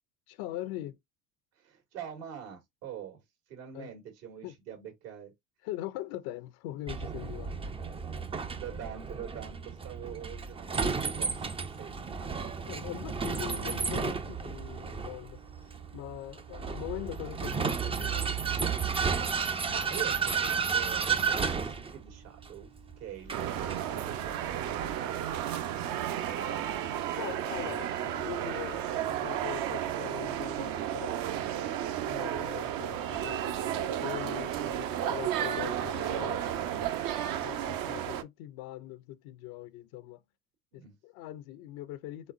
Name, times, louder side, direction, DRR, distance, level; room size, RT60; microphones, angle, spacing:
voice 1, 0.3-1.0 3.7-3.9 4.4-4.5 5.6-7.6 12.7-15.4 15.7-18.4 27.1-31.2 32.1-36.9 37.4-40.2 40.7-42.3, left 14 dB, 60° left, 0.7 m, -42 dB
voice 2, 1.5-3.2 3.5-5.3 8.3-11.9 12.2-12.5 19.1-22.7 23.0-27.4 33.1-33.3 40.7-41.0, right 9 dB, 75° right, 2.2 m, -45 dB
Vehicle, 6.9-24.9, right 6 dB, 15° right, 0.5 m, -33 dB
sound 1, 23.3-38.2, right 10 dB, 55° right, 0.8 m, -33 dB
4.1 x 3.6 x 2.5 m
hypercardioid pair, 75°, 42 cm